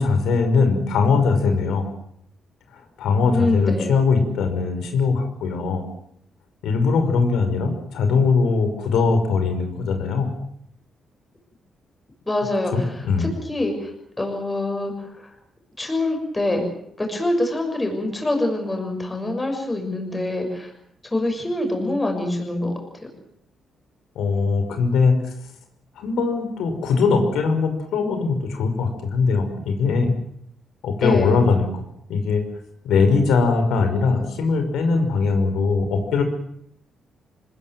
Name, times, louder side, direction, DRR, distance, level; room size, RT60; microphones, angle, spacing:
voice 1, 0.0-1.8 2.7-5.8 6.6-10.3 12.7-13.3 24.2-25.3 26.0-30.1 30.8-31.8 32.1-32.4 32.8-36.2, left 4 dB, 90° left, 6 dB, 5.6 m, -21 dB
voice 2, 3.3-3.9 12.3-13.9 14.2-15.3 15.8-16.7 17.0-20.7 21.1-23.1 31.0-31.3, left 1 dB, 15° left, 3 dB, 6.5 m, -25 dB
26.5 x 21.0 x 7.8 m, 0.72 s
cardioid pair, 150°, 0 cm